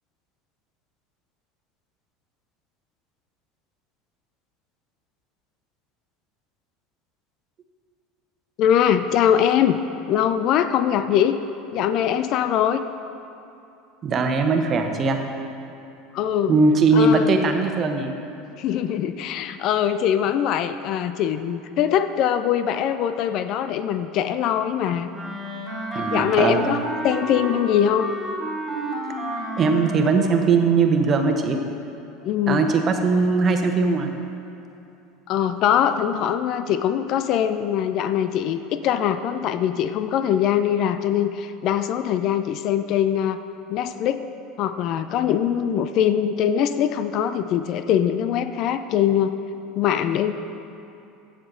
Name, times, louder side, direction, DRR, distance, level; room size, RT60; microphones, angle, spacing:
voice 1, 8.6-9.8 10.1-11.4 11.7-12.8 16.1-16.5 16.9-17.3 18.6-25.1 26.1-26.8 27.0-28.1 32.2-32.7 35.3-43.4 43.7-44.3 44.6-49.4 49.8-50.3, left 9 dB, 50° left, 11 dB, 0.4 m, -22 dB
voice 2, 14.0-15.2 16.5-18.1 25.9-26.6 29.6-31.6 32.5-34.1, right 4 dB, 35° right, 5 dB, 1.0 m, -20 dB
Wind instrument woodwind instrument, 25.1-30.4, right 1 dB, 10° right, 2.4 m, -30 dB
15.5 x 6.6 x 3.8 m, 2.8 s
hypercardioid pair, 75°, 0 cm